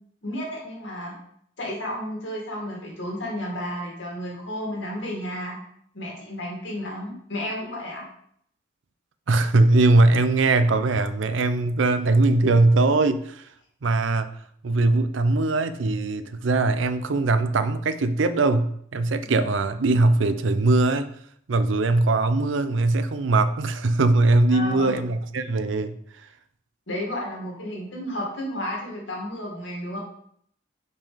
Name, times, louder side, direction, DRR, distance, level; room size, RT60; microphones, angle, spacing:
voice 1, 0.2-1.2 1.6-5.6 5.9-8.0 19.3-19.4 24.5-25.0 26.9-30.0, left 1 dB, 65° left, -1 dB, 2.3 m, -32 dB
voice 2, 9.3-13.4 13.8-14.3 14.6-21.1 21.5-25.9, right 2 dB, 70° right, 11 dB, 0.5 m, -21 dB
6.0 x 4.5 x 5.0 m, 0.67 s
head